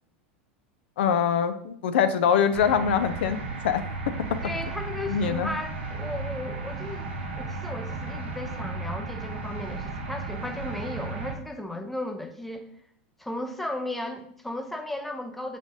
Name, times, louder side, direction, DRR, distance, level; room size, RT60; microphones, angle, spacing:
voice 1, 1.0-4.1 5.1-5.5, left 7 dB, 75° left, 10 dB, 0.4 m, -24 dB
sound 1, 2.5-11.3, right 3 dB, 85° right, 0.7 m, -34 dB
voice 2, 4.4-7.1 7.4-12.7 13.2-15.6, left 1 dB, 5° left, 5 dB, 0.5 m, -35 dB
5.1 x 3.3 x 2.6 m, 0.65 s
hypercardioid pair, 100°, 6 cm